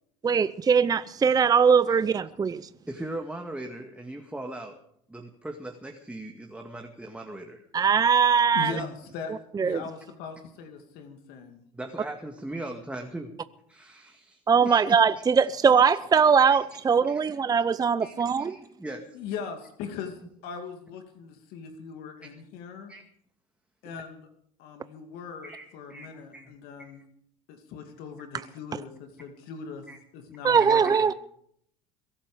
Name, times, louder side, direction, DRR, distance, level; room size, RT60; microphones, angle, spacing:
voice 1, 0.2-2.6 7.7-8.7 9.5-9.8 14.5-18.6 30.4-31.1, right 6 dB, 20° right, 0.7 m, -21 dB
voice 2, 2.9-4.8 5.1-7.7 8.8-8.9 11.7-13.3 13.7-15.0 16.5-16.8 17.1-17.2 18.0-19.1 22.2-22.3 22.9-23.0 25.4-26.5 26.8-27.0 29.9-30.0 30.6-31.0, right 1 dB, 5° right, 2.2 m, -39 dB
voice 3, 8.5-9.3 9.6-11.6 19.1-22.9 23.8-24.3 24.6-27.0 27.5-29.9 30.1-31.1, left 6 dB, 65° left, 2.4 m, -40 dB
22.5 x 12.5 x 5.1 m
hypercardioid pair, 80°, 17 cm